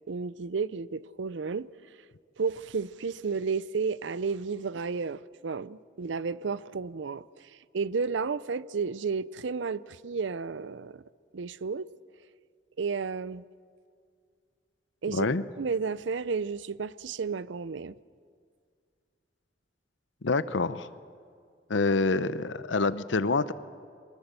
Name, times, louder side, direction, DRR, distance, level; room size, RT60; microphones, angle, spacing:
voice 1, 0.1-1.7 2.4-11.0 11.3-11.9 12.8-13.4 15.0-15.3 15.6-17.9, right 5 dB, 80° right, 0.5 m, -32 dB
voice 2, 15.1-15.4 20.2-20.9 21.7-23.5, left 3 dB, 80° left, 0.8 m, -26 dB
23.5 x 21.0 x 6.8 m
head